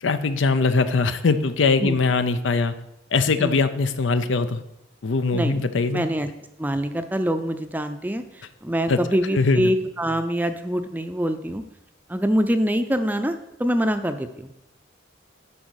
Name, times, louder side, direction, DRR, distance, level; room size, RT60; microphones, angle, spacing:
voice 1, 0.0-2.7 3.1-4.6 5.0-6.0 8.9-9.0 9.3-9.7, left 4 dB, 85° left, 11 dB, 0.6 m, -21 dB
voice 2, 5.3-5.6 5.9-6.3 6.6-11.6 12.1-14.5, equal, 10° right, 8 dB, 0.5 m, -25 dB
10.5 x 4.0 x 6.3 m, 0.86 s
head